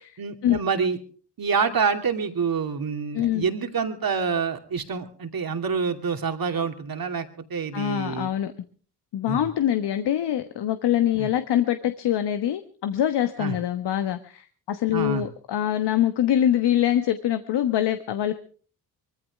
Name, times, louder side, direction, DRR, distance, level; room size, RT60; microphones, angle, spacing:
voice 1, 0.2-1.0 1.4-8.3 9.3-9.4 11.2-11.3 13.4-13.6 14.9-15.3, right 5 dB, 50° right, 6 dB, 2.7 m, -27 dB
voice 2, 3.1-3.4 7.7-8.5 9.1-18.4, left 11 dB, 65° left, 10 dB, 1.3 m, -24 dB
23.5 x 15.0 x 3.5 m, 0.42 s
hypercardioid pair, 45°, 44 cm